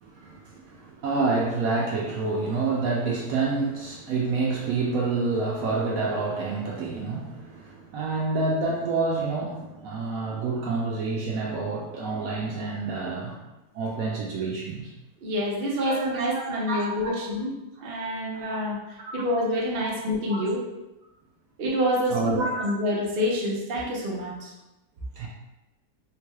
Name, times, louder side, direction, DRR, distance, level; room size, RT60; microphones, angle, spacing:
voice 1, 0.0-13.4 13.7-14.9 15.8-17.1 17.8-17.9 18.4-18.6 19.2-19.3 19.8-19.9 20.3-20.4 22.1-22.7 25.2-25.3, right 3 dB, 70° right, -3 dB, 0.9 m, -28 dB
voice 2, 15.2-17.5 17.8-18.8 19.1-20.6 21.6-24.5, equal, 50° right, -3 dB, 0.7 m, -27 dB
3.7 x 3.1 x 2.2 m, 0.99 s
omnidirectional pair, 1.7 m